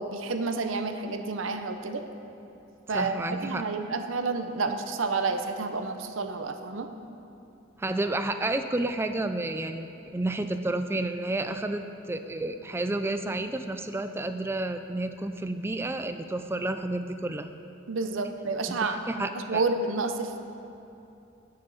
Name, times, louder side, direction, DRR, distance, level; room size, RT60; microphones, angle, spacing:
voice 1, 0.0-2.0 2.9-3.2 3.4-6.9 17.9-20.4, right 3 dB, 75° right, 7 dB, 0.7 m, -30 dB
voice 2, 2.9-3.6 7.8-17.5 18.7-19.6, right 2 dB, 10° right, 8 dB, 0.3 m, -31 dB
17.5 x 6.6 x 4.1 m, 2.8 s
head